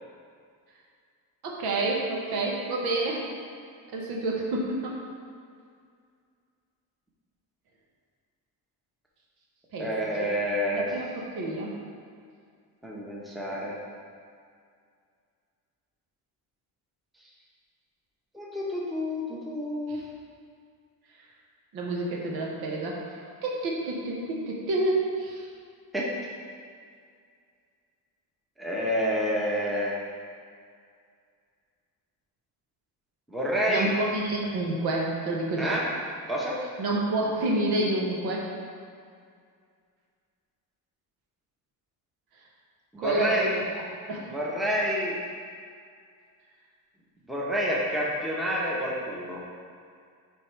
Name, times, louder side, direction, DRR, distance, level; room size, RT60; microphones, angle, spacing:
voice 1, 1.4-3.2 3.9-5.0 9.7-9.9 10.2-10.3 10.7-11.7 19.9-20.0 21.7-25.5 33.7-35.8 36.8-38.5 43.0-43.8 44.1-44.3, right 2 dB, 70° right, -3 dB, 1.3 m, -29 dB
voice 2, 9.8-10.9 12.8-13.7 18.3-20.0 25.9-26.1 28.6-29.9 33.3-33.9 35.6-35.8 36.3-36.6 42.9-43.5 44.3-45.1 47.3-49.4, equal, ahead, -5 dB, 0.9 m, -28 dB
9.3 x 3.7 x 3.2 m, 2.2 s
cardioid pair, 130°, 40 cm